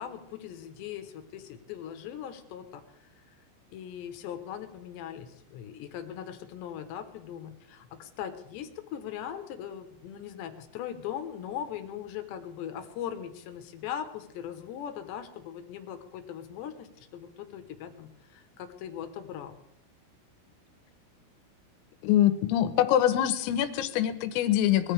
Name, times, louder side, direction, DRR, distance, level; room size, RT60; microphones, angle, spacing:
voice 1, 0.0-2.8 3.3-3.4 3.7-19.6, left 9 dB, 70° left, 8 dB, 3.0 m, -40 dB
voice 2, 22.0-24.9, left 11 dB, 90° left, 10 dB, 3.6 m, -24 dB
21.0 x 15.5 x 3.4 m, 0.82 s
omnidirectional pair, 6.0 m